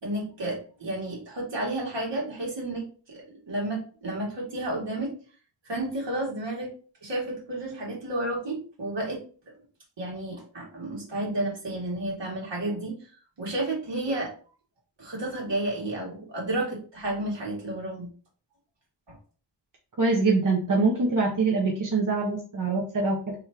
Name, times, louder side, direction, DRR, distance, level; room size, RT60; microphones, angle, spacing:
voice 1, 0.0-5.1 5.6-6.7 7.0-9.5 10.0-13.1 13.4-14.3 15.0-18.1 19.1-19.2, right 1 dB, 70° right, -3 dB, 2.1 m, -31 dB
voice 2, 20.0-23.3, right 3 dB, 45° right, -1 dB, 0.9 m, -24 dB
3.5 x 3.0 x 3.5 m, 0.39 s
wide cardioid pair, 105°, 44 cm